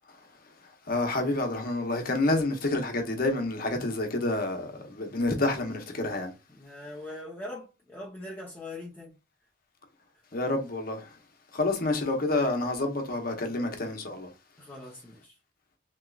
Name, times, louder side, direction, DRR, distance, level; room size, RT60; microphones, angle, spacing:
voice 1, 0.9-6.3 10.3-11.1 11.5-14.3, left 2 dB, 55° left, 0.9 m, -28 dB
voice 2, 6.5-9.1 14.6-15.3, left 1 dB, 10° left, 0.8 m, -42 dB
3.5 x 3.0 x 2.4 m
head